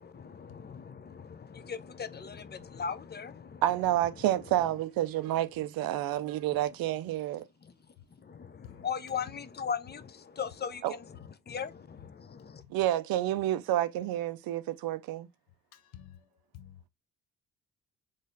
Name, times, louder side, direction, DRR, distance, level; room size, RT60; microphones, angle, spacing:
voice 1, 0.0-3.6 4.1-4.3 7.6-7.7 8.2-12.6, left 6 dB, 25° left, 0.6 m, -39 dB
voice 2, 3.6-7.4 10.8-10.9 12.7-15.3, right 13 dB, 70° right, 0.5 m, -29 dB
voice 3, 15.7-16.8, left 11 dB, 80° left, 0.7 m, -51 dB
3.7 x 3.2 x 2.6 m
hypercardioid pair, 50°, 38 cm